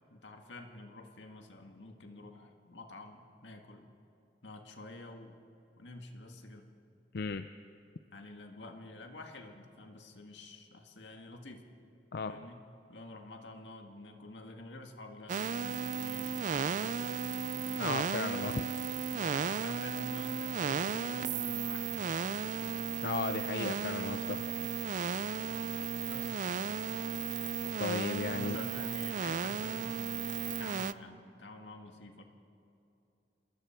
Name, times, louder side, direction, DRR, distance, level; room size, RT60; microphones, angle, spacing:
voice 1, 0.1-3.9 4.4-5.4 5.8-6.7 8.1-11.7 12.2-12.6 12.9-17.9 19.1-22.4 26.1-26.4 28.3-32.2, left 2 dB, 85° left, 4 dB, 1.9 m, -49 dB
voice 2, 7.1-7.5 12.1-12.4 17.8-18.7 23.0-24.5 27.8-28.6, left 4 dB, 60° left, 9 dB, 0.5 m, -35 dB
sound 1, 15.3-30.9, right 6 dB, 45° right, 0.4 m, -35 dB
28.0 x 20.5 x 4.5 m, 2.7 s
head